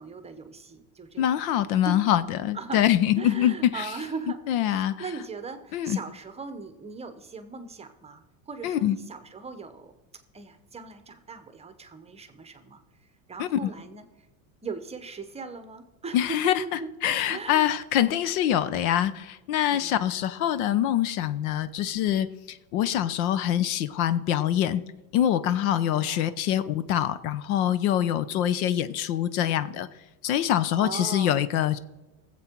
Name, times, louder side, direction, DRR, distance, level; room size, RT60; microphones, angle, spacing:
voice 1, 0.0-1.4 1.9-2.0 2.5-2.9 3.2-9.9 10.3-12.8 13.3-14.0 14.6-16.9 17.3-17.7 19.7-20.1 25.7-26.3 30.7-31.4, right 4 dB, 15° right, 10 dB, 0.9 m, -39 dB
voice 2, 1.2-3.9 4.5-5.0 5.7-6.0 8.6-9.0 13.4-13.7 16.1-16.6 17.0-24.8 25.1-29.9 30.2-31.8, left 11 dB, 75° left, 15 dB, 0.9 m, -24 dB
18.5 x 7.8 x 4.5 m, 1.1 s
supercardioid pair, 135°, 43 cm